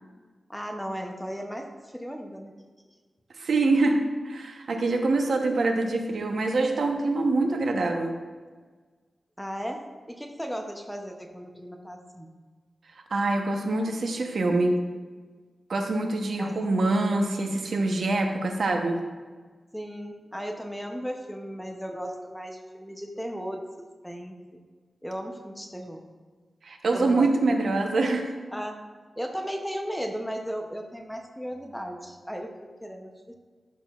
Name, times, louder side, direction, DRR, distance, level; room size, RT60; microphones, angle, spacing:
voice 1, 0.5-2.5 9.4-9.8 10.1-12.3 16.4-16.5 19.7-23.6 24.0-24.6 25.0-26.0 26.9-27.3 28.5-28.8 29.2-33.3, equal, ahead, 3 dB, 0.6 m, -36 dB
voice 2, 3.4-8.1 13.1-14.8 15.7-19.0 26.6-28.3, right 2 dB, 65° right, 3 dB, 0.8 m, -25 dB
11.5 x 6.4 x 2.4 m, 1.4 s
wide cardioid pair, 180°, 0 cm